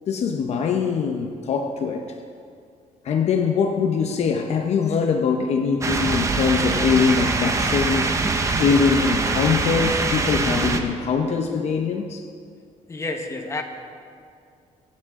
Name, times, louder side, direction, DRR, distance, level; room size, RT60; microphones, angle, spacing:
voice 1, 0.1-2.2 3.0-8.3 8.6-12.2, left 5 dB, 55° left, 4 dB, 0.8 m, -22 dB
sound 1, 5.8-10.8, right 3 dB, 20° right, 1.0 m, -23 dB
voice 2, 12.9-13.6, left 2 dB, 20° left, 3 dB, 1.3 m, -29 dB
24.0 x 9.7 x 3.7 m, 2.3 s
cardioid pair, 135°, 14 cm